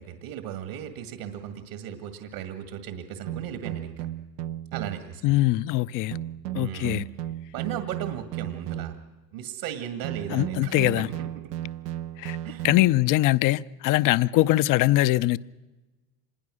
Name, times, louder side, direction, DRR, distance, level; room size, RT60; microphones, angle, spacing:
voice 1, 0.0-4.1 4.7-5.4 6.5-7.0 7.5-9.0 9.3-11.3 12.4-12.7, right 9 dB, 65° right, 2.2 m, -36 dB
sound 1, 3.3-5.2 6.1-9.2 10.0-13.2, right 13 dB, 85° right, 0.9 m, -35 dB
voice 2, 5.2-6.2 6.5-7.0 10.3-11.1 12.2-12.4 12.6-15.4, left 17 dB, 45° left, 0.6 m, -22 dB
26.0 x 21.0 x 6.3 m
hypercardioid pair, 95°, 47 cm